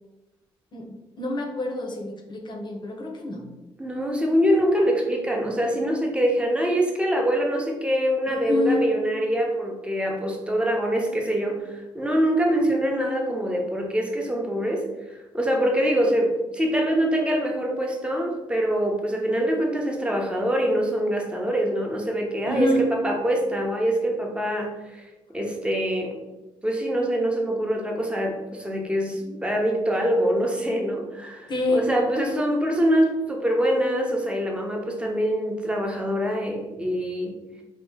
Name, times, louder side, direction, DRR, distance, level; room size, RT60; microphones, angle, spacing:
voice 1, 0.7-3.5 8.5-8.8 22.5-22.8 31.5-31.9, left 2 dB, 45° left, 1 dB, 0.8 m, -27 dB
voice 2, 3.8-14.9 15.3-25.0 25.3-26.2 26.6-37.4, equal, 10° right, 1 dB, 0.8 m, -24 dB
2.9 x 2.3 x 3.7 m, 1.1 s
supercardioid pair, 65°, 11 cm